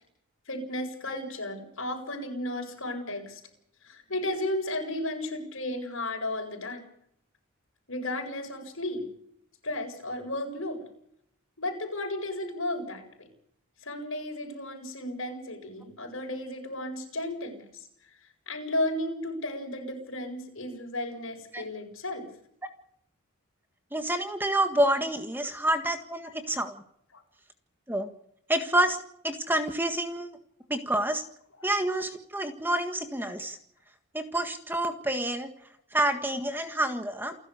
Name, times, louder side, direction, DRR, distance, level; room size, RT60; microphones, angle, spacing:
voice 1, 0.5-3.4 3.8-6.8 7.9-9.0 9.6-10.8 11.6-13.3 13.8-18.2 18.5-22.3 26.2-26.3 27.1-27.2 31.5-31.7, left 1 dB, 60° left, 4 dB, 7.6 m, -34 dB
voice 2, 23.9-26.8 27.9-28.1 28.5-29.0 29.2-30.3 30.7-31.2 31.6-33.6 34.1-35.5 35.9-37.4, right 1 dB, 10° right, 7 dB, 1.7 m, -28 dB
29.0 x 12.0 x 8.3 m, 0.70 s
head